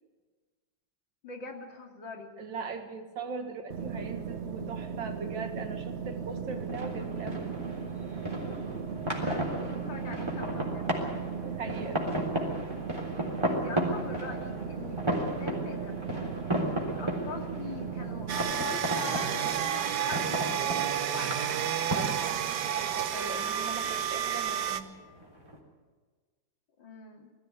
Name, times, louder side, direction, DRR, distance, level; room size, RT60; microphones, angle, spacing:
voice 1, 1.2-2.3 9.1-10.9 13.5-16.0 16.9-21.6 26.8-27.3, left 3 dB, 85° left, 2 dB, 3.2 m, -42 dB
voice 2, 2.4-7.6 11.3-12.0 21.9-25.0, right 4 dB, 85° right, 6 dB, 2.5 m, -40 dB
sound 1, 3.7-18.5, right 6 dB, 40° right, 1.2 m, -37 dB
sound 2, 6.3-25.6, equal, 15° right, 3.6 m, -35 dB
sound 3, 18.3-24.8, right 9 dB, 70° right, 1.6 m, -30 dB
20.0 x 14.0 x 9.5 m, 1.4 s
omnidirectional pair, 2.0 m